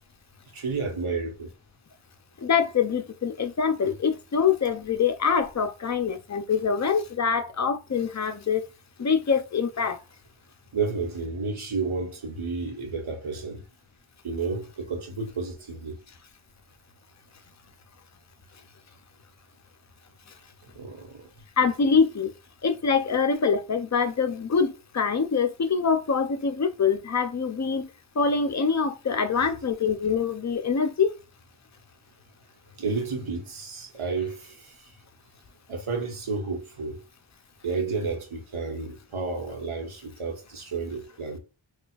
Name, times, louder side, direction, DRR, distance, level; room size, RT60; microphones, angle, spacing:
voice 1, 0.5-1.5 10.7-13.6 14.2-16.0 20.7-21.3 32.8-34.9 35.7-37.0 37.6-41.4, right 4 dB, 80° right, 1.1 m, -31 dB
voice 2, 2.4-8.6 9.0-10.0 21.6-22.3 22.6-27.9 28.2-31.1, left 6 dB, 35° left, 0.5 m, -24 dB
4.3 x 2.3 x 2.3 m
wide cardioid pair, 60°, 49 cm